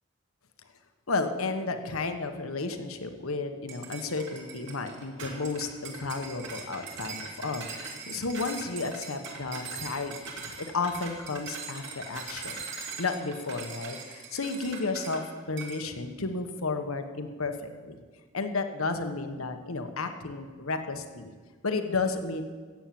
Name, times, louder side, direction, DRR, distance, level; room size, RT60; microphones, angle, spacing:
voice 1, 1.1-15.2 15.5-18.0 18.3-21.3 21.6-22.4, left 3 dB, 80° left, 7 dB, 1.2 m, -32 dB
sound 1, 3.7-15.2 15.6-15.8, right 4 dB, 55° right, 2.6 m, -41 dB
14.5 x 8.9 x 7.7 m, 1.5 s
head